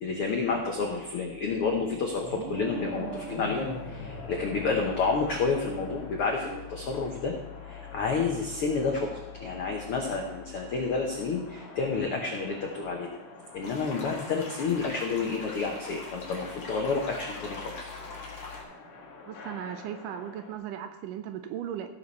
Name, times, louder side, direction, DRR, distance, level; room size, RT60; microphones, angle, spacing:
voice 1, 0.0-7.3 7.6-13.1 13.5-17.9, left 4 dB, 80° left, 1 dB, 1.2 m, -30 dB
sound 1, 2.2-5.3, right 2 dB, 60° right, 2.7 m, -41 dB
sound 2, 2.6-20.5, left 2 dB, 55° left, 2.8 m, -46 dB
sound 3, 13.6-18.6, left 3 dB, 40° left, 2.1 m, -42 dB
voice 2, 19.3-21.9, right 10 dB, 80° right, 8 dB, 2.0 m, -37 dB
15.5 x 6.9 x 4.1 m, 0.95 s
omnidirectional pair, 4.1 m